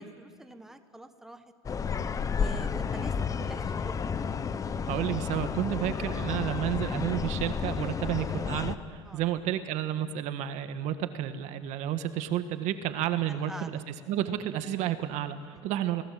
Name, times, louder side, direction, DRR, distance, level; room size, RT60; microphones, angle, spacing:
voice 1, 0.0-1.4 2.3-3.1 3.4-4.0 9.0-9.2 13.3-13.8 15.5-15.6, right 1 dB, 5° right, 8 dB, 1.3 m, -45 dB
sound 1, 1.6-8.7, left 6 dB, 25° left, 1.0 m, -31 dB
voice 2, 4.9-13.7 14.1-16.0, right 11 dB, 55° right, 10 dB, 1.7 m, -31 dB
30.0 x 19.5 x 7.7 m, 2.1 s
supercardioid pair, 115°, 14 cm